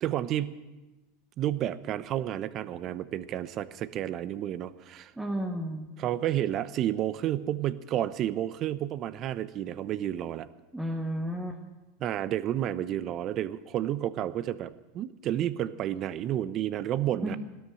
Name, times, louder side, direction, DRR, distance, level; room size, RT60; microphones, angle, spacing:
voice 1, 0.0-0.6 1.4-5.1 6.0-10.5 12.0-17.4, right 12 dB, 45° right, 15 dB, 0.8 m, -31 dB
voice 2, 5.2-5.9 10.7-11.6 17.2-17.4, right 1 dB, 10° right, 1 dB, 1.7 m, -32 dB
17.0 x 13.0 x 6.4 m, 1.1 s
hypercardioid pair, 100°, 0 cm